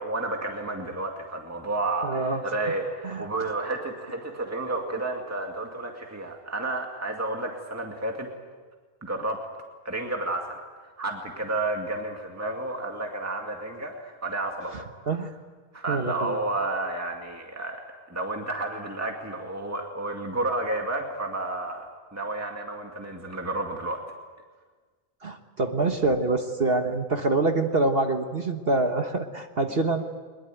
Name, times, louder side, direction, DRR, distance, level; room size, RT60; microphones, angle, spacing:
voice 1, 0.0-8.3 9.0-9.5 9.8-14.9 15.7-24.0, right 2 dB, 10° right, 2 dB, 2.2 m, -31 dB
voice 2, 2.0-2.4 3.0-3.3 15.1-15.3 15.9-16.4 25.2-30.0, right 3 dB, 40° right, 5 dB, 1.4 m, -25 dB
23.0 x 21.0 x 9.2 m, 1.4 s
omnidirectional pair, 1.6 m